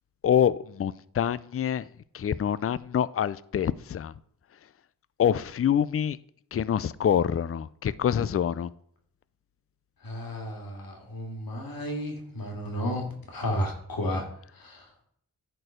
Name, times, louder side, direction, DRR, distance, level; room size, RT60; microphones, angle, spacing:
voice 1, 0.2-1.9 2.1-4.1 5.2-6.2 6.5-8.7, left 9 dB, 40° left, 0.4 m, -26 dB
voice 2, 10.0-14.3 14.6-14.8, equal, 85° left, 2.3 m, -32 dB
10.5 x 4.6 x 5.1 m
wide cardioid pair, 80°, 34 cm